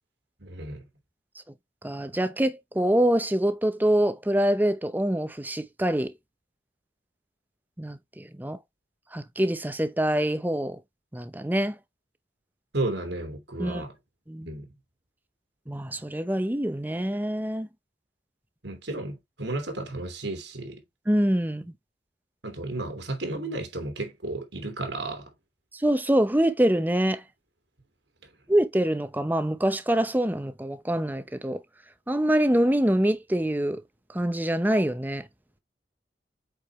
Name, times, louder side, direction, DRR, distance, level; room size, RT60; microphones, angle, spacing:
voice 1, 0.4-0.8 12.7-14.0 14.5-14.7 18.6-20.8 22.4-25.3 28.2-28.3, right 2 dB, 90° right, 2.6 m, -33 dB
voice 2, 1.8-6.1 7.8-8.6 9.1-10.8 11.1-11.8 13.6-13.8 14.3-14.5 15.7-17.7 21.1-21.7 25.7-27.2 28.5-31.6 32.1-33.8 34.1-35.3, right 1 dB, 10° right, 0.8 m, -25 dB
8.4 x 4.8 x 3.2 m
head